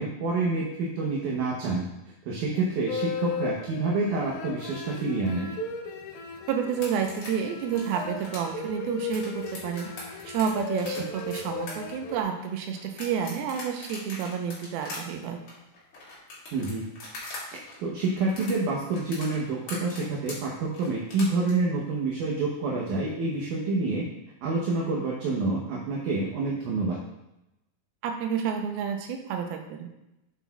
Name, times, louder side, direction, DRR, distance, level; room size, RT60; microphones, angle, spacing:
voice 1, 0.0-1.9 2.3-5.5 11.0-11.1 16.5-16.8 17.5-24.1 24.4-27.0, right 3 dB, 70° right, -3 dB, 2.2 m, -28 dB
sound 1, 2.9-12.2, left 4 dB, 75° left, 1.9 m, -36 dB
voice 2, 6.5-15.4 28.0-29.9, right 7 dB, 85° right, 4 dB, 2.7 m, -30 dB
sound 2, 6.7-17.4 17.7-21.5, left 2 dB, 50° left, 3.3 m, -41 dB
8.1 x 8.0 x 2.3 m, 0.90 s
omnidirectional pair, 4.3 m